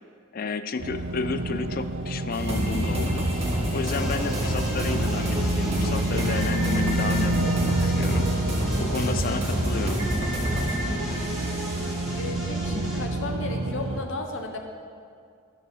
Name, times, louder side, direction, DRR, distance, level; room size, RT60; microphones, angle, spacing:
voice 1, 0.3-3.3 3.7-8.3 8.8-10.0, left 4 dB, 40° left, 11 dB, 0.4 m, -31 dB
sound 1, 0.8-14.0, right 2 dB, 70° right, 0.8 m, -29 dB
sound 2, 2.3-12.2, equal, 30° right, 2.1 m, -28 dB
sound 3, 3.8-13.0, equal, ahead, 1.9 m, -35 dB
voice 2, 12.1-14.6, left 2 dB, 60° left, 3 dB, 0.7 m, -34 dB
11.5 x 5.0 x 6.5 m, 2.3 s
head